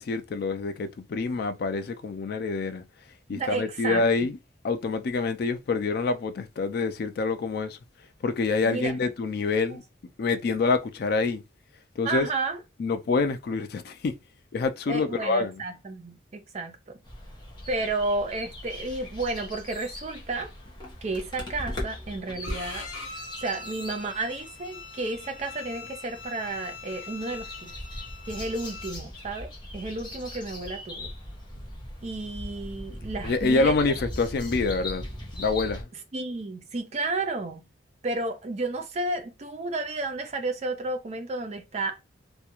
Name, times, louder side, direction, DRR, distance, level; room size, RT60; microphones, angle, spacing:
voice 1, 0.0-2.8 3.3-4.4 4.6-7.8 8.2-9.8 10.2-11.4 12.0-12.3 12.8-14.1 14.5-15.6 33.2-35.0 35.3-35.9, left 3 dB, 55° left, 0.3 m, -26 dB
voice 2, 3.3-4.0 8.6-8.9 9.7-9.8 12.0-12.6 14.9-17.0 17.7-20.5 21.0-22.9 23.4-27.7 28.3-31.1 32.0-33.8 36.1-37.6 38.0-42.0, right 2 dB, 35° right, 0.4 m, -32 dB
sound 1, 17.0-35.8, left 1 dB, 25° left, 0.7 m, -40 dB
Bowed string instrument, 22.4-28.9, left 4 dB, 70° left, 0.7 m, -42 dB
2.3 x 2.1 x 2.9 m
head